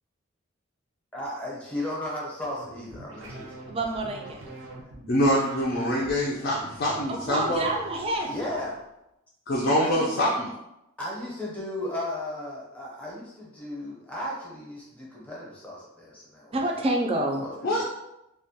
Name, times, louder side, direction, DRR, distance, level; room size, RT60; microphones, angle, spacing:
voice 1, 1.1-3.6 8.2-8.8 9.8-10.1 11.0-16.8 17.4-17.8, left 1 dB, 5° left, -5 dB, 0.6 m, -35 dB
sound 1, 2.4-8.8, right 1 dB, 85° right, 0.6 m, -44 dB
voice 2, 3.7-4.4 7.3-8.3 16.5-17.5, right 1 dB, 30° right, 1 dB, 0.3 m, -27 dB
voice 3, 5.1-7.6 9.5-10.5 17.6-17.8, equal, 50° left, -5 dB, 0.4 m, -25 dB
2.3 x 2.1 x 2.7 m, 0.89 s
head